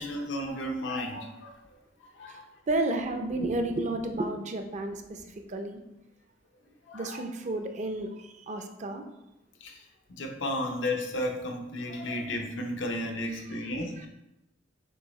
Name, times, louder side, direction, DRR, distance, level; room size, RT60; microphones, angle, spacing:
voice 1, 0.0-1.5 2.2-2.4 6.9-7.2 9.6-9.7 10.1-14.1, left 1 dB, 90° left, 3 dB, 0.7 m, -33 dB
voice 2, 2.7-5.8 6.9-9.0 13.3-14.1, right 2 dB, 40° right, 5 dB, 0.5 m, -32 dB
6.1 x 2.7 x 3.1 m, 0.91 s
head